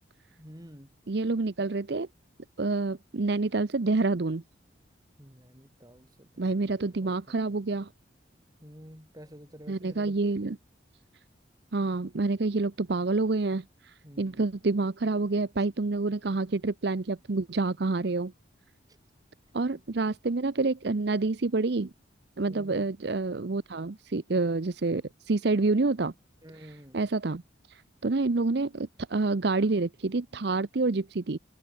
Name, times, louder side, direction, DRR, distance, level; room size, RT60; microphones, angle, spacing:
voice 1, 0.4-1.0 5.2-7.4 8.6-10.2 14.0-14.5 18.9-19.0 19.7-19.8 22.4-22.9 26.4-27.0, equal, 20° right, 3.5 m, -50 dB
voice 2, 1.1-2.1 2.6-4.4 6.4-7.9 9.7-10.6 11.7-18.3 19.5-21.9 22.4-26.1 26.9-27.4 27.7-31.4, right 3 dB, 55° right, 0.7 m, -28 dB
head